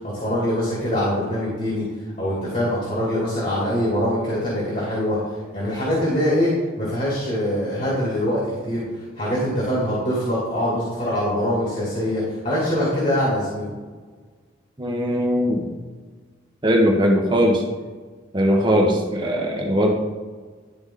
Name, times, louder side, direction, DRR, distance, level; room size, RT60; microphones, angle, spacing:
voice 1, 0.0-1.8 2.2-5.2 5.5-6.5 6.8-8.8 9.2-13.7, equal, 40° left, -7 dB, 2.5 m, -23 dB
voice 2, 14.8-15.7 16.6-17.6 18.3-19.9, equal, 25° right, 0 dB, 1.2 m, -19 dB
11.5 x 4.9 x 3.8 m, 1.5 s
head